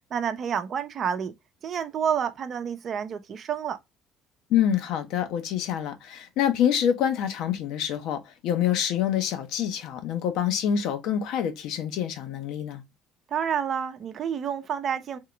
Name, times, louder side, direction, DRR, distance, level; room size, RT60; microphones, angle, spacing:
voice 1, 0.1-1.3 1.6-3.8 13.3-15.2, right 8 dB, 45° right, 0.7 m, -29 dB
voice 2, 4.5-12.8, left 9 dB, 60° left, 0.8 m, -26 dB
3.7 x 3.7 x 3.2 m
figure-of-eight pair, 55°, 0 cm